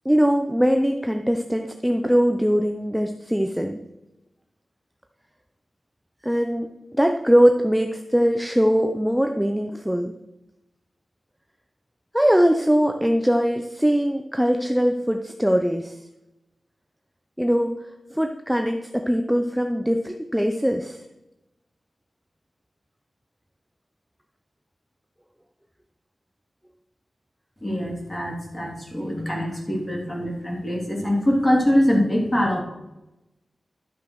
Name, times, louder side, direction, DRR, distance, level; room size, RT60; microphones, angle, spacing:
voice 1, 0.0-3.8 6.2-6.7 6.9-10.1 12.1-16.0 17.4-17.8 18.1-21.0, equal, 5° right, 5 dB, 0.7 m, -21 dB
voice 2, 27.6-32.6, equal, 15° left, 0 dB, 2.9 m, -23 dB
12.0 x 6.4 x 6.2 m, 0.94 s
wide cardioid pair, 115°, 0 cm